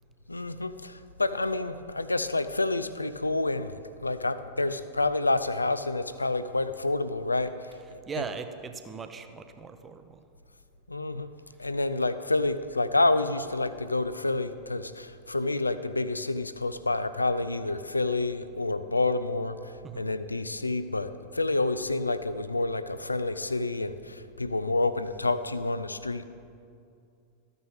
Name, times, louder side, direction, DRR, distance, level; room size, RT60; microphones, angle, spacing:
voice 1, 0.3-8.2 10.9-11.3 11.6-26.3, left 2 dB, 80° left, 13 dB, 0.4 m, -29 dB
voice 2, 8.1-10.2 19.8-20.1, right 5 dB, 20° right, 9 dB, 0.7 m, -39 dB
13.5 x 9.4 x 3.5 m, 2.5 s
figure-of-eight pair, 90°, 0 cm